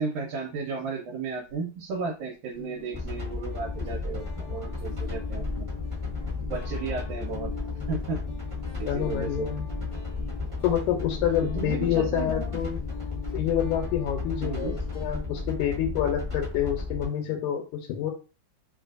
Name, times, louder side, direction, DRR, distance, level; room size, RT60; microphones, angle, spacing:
voice 1, 0.0-5.7 6.5-7.5 7.9-8.2 8.8-9.5 11.4-12.6 14.4-14.8, right 4 dB, 80° right, -3 dB, 2.3 m, -34 dB
Guitar, 1.3-1.5 2.5-15.2, left 7 dB, 45° left, 1.7 m, -44 dB
sound 1, 2.9-17.0, left 3 dB, 20° right, 0.9 m, -33 dB
voice 2, 8.9-9.7 10.6-12.8 13.3-18.1, left 10 dB, 85° left, 3 dB, 2.1 m, -27 dB
4.8 x 2.5 x 2.4 m, 0.32 s
omnidirectional pair, 3.5 m